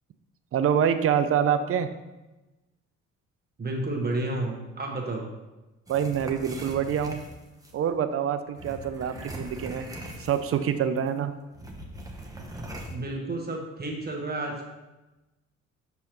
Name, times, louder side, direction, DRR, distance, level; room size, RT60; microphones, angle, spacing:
voice 1, 0.5-1.9 5.9-7.2 7.7-9.8 10.2-11.3, right 8 dB, 50° right, 9 dB, 0.6 m, -26 dB
voice 2, 3.6-5.2 12.9-14.7, right 2 dB, 30° right, 1 dB, 1.4 m, -31 dB
sound 1, 5.9-7.8 8.6-10.7 11.0-11.1 11.5-13.0, right 1 dB, 10° right, 1.0 m, -40 dB
6.6 x 5.5 x 3.0 m, 1.1 s
cardioid pair, 90°, 30 cm